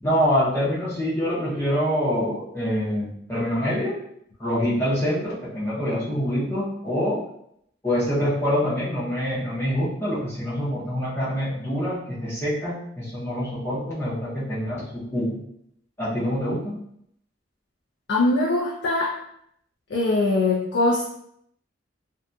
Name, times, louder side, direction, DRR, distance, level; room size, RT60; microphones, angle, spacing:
voice 1, 0.0-4.0 4.4-7.2 7.8-15.4 16.0-16.7, equal, 15° left, -11 dB, 0.6 m, -25 dB
voice 2, 18.1-19.2 19.9-21.0, left 2 dB, 60° left, -5 dB, 0.5 m, -22 dB
2.6 x 2.6 x 2.2 m, 0.73 s
head